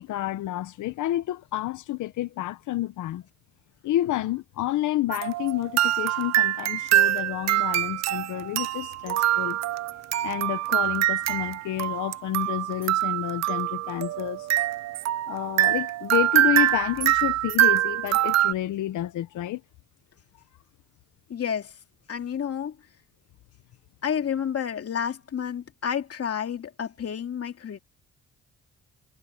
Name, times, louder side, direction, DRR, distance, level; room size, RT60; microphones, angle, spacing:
voice 1, 0.0-3.2 3.8-9.6 10.2-14.5 15.3-19.6, left 14 dB, 80° left, 1.0 m, -29 dB
sound 1, 5.1-18.5, right 13 dB, 60° right, 0.5 m, -24 dB
voice 2, 21.3-21.8 22.1-22.8 24.0-27.8, left 8 dB, 50° left, 2.4 m, -30 dB
cardioid pair, 90°, 30 cm